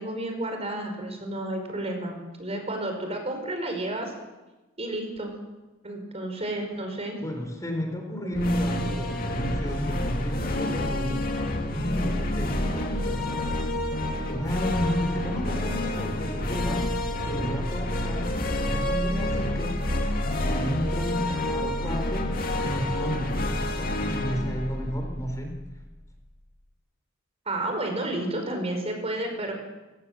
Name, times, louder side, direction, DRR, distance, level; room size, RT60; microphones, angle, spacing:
voice 1, 0.0-2.1 2.4-4.1 4.8-5.3 5.8-7.2 8.8-9.1 15.1-15.4 15.7-16.1 27.5-29.5, right 1 dB, 30° right, 4 dB, 5.2 m, -31 dB
voice 2, 7.2-13.4 14.3-16.9 17.2-19.8 20.4-23.4 24.0-25.6, equal, 15° left, 3 dB, 4.1 m, -32 dB
sound 1, 8.3-25.8, left 1 dB, 50° left, 2.6 m, -28 dB
28.5 x 17.5 x 7.6 m, 1.1 s
head